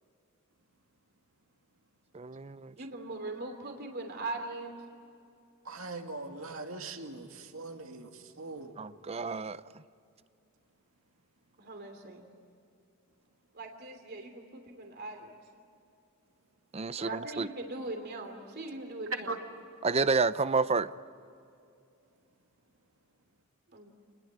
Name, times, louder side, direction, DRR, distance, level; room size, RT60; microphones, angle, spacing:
voice 1, 2.1-2.7 8.8-9.6 16.7-17.5 19.8-20.9, right 4 dB, 30° right, 15 dB, 0.6 m, -29 dB
voice 2, 2.8-4.7 11.6-12.3 13.5-15.3 17.0-19.4 23.7-23.9, right 2 dB, 50° right, 4 dB, 3.0 m, -40 dB
voice 3, 5.7-7.3 7.5-8.1 8.4-8.7 19.3-19.4, right 3 dB, 70° right, 4 dB, 2.5 m, -40 dB
29.0 x 21.0 x 9.6 m, 2.6 s
head